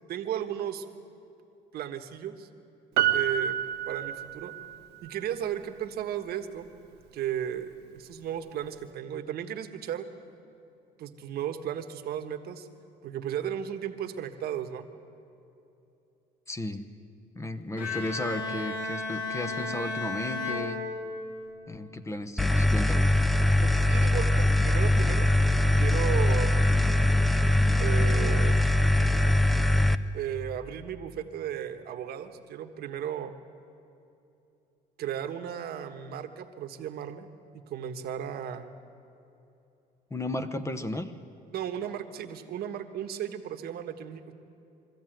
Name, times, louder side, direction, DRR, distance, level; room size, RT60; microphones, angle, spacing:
voice 1, 0.1-0.8 1.7-2.5 3.1-3.6 3.9-4.5 5.0-6.7 7.1-10.1 11.0-12.7 13.0-14.9 23.6-25.4 25.8-26.7 27.8-28.6 30.1-33.3 35.0-37.3 37.7-38.7 41.5-44.3, right 10 dB, 70° right, 7 dB, 1.4 m, -35 dB
Piano, 3.0-4.7 5.1-5.2, right 10 dB, 85° right, 1.0 m, -28 dB
voice 2, 16.5-16.9 17.3-20.8 21.7-23.1 40.1-41.1, left 1 dB, 15° left, 10 dB, 1.0 m, -34 dB
Bowed string instrument, 17.8-21.5, left 3 dB, 65° left, 4.7 m, -34 dB
sound 1, 22.4-29.9, left 1 dB, ahead, 0.6 m, -22 dB
22.5 x 14.0 x 9.1 m, 2.8 s
cardioid pair, 110°, 17 cm